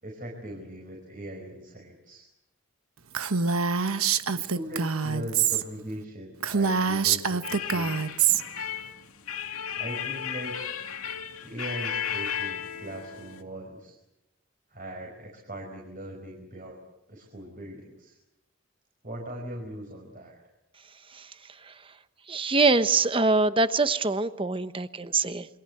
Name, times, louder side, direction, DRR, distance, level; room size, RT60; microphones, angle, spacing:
voice 1, 0.0-2.2 4.3-8.1 9.8-10.6 11.4-13.9 14.7-16.8 17.1-18.1 19.0-20.4, equal, 40° right, 1 dB, 5.1 m, -40 dB
Female speech woman speaking, 3.1-5.6 6.0-6.1 6.4-8.4, right 6 dB, 90° right, 1.2 m, -25 dB
sound 1, 7.4-13.4, left 8 dB, 90° left, 2.4 m, -34 dB
voice 2, 22.3-25.5, right 3 dB, 25° right, 11 dB, 1.0 m, -24 dB
28.5 x 23.5 x 7.9 m, 0.89 s
head